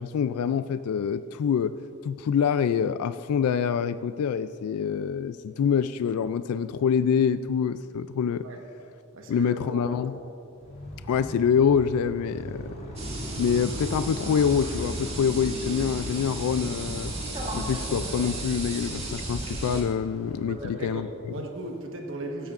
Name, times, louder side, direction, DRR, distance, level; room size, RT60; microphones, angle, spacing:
voice 1, 0.0-1.8 2.0-8.4 9.3-10.2 11.1-12.8 13.4-17.1 17.5-21.4, left 7 dB, 75° left, 12 dB, 0.3 m, -26 dB
voice 2, 9.1-10.3 20.5-22.5, right 1 dB, 60° right, 2 dB, 1.3 m, -37 dB
Motorcycle, 10.5-21.2, equal, 45° left, 2.4 m, -41 dB
sound 1, 13.0-19.8, right 1 dB, 30° right, 2.0 m, -34 dB
16.0 x 13.5 x 2.5 m, 2.8 s
head